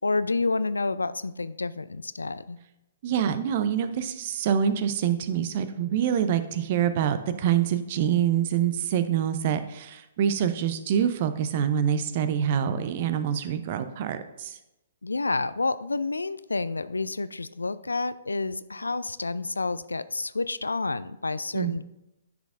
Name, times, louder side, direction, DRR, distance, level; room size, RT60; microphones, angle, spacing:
voice 1, 0.0-2.6 15.0-21.8, left 3 dB, 80° left, 16 dB, 0.3 m, -29 dB
voice 2, 3.0-14.6 21.5-21.8, right 9 dB, 45° right, 11 dB, 0.6 m, -26 dB
10.0 x 6.2 x 2.5 m, 0.92 s
figure-of-eight pair, 120°, 0 cm